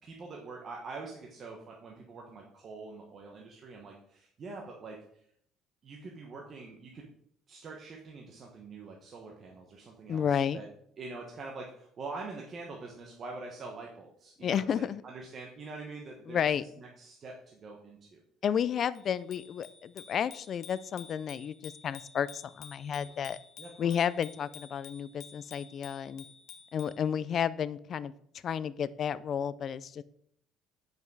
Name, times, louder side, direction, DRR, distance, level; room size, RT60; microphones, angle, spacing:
voice 1, 0.0-5.0 5.8-7.1 7.5-10.7 11.0-18.2 23.0-23.1 23.6-24.0, right 3 dB, 30° right, 0 dB, 0.9 m, -45 dB
voice 2, 10.1-10.6 14.4-15.0 16.3-16.6 18.4-23.4 23.8-26.2 26.7-28.1 28.4-30.0, left 8 dB, 35° left, 17 dB, 0.3 m, -31 dB
Bicycle bell, 18.9-27.0, left 8 dB, 50° left, 0.8 m, -51 dB
7.6 x 5.3 x 4.7 m, 0.69 s
cardioid pair, 170°, 0 cm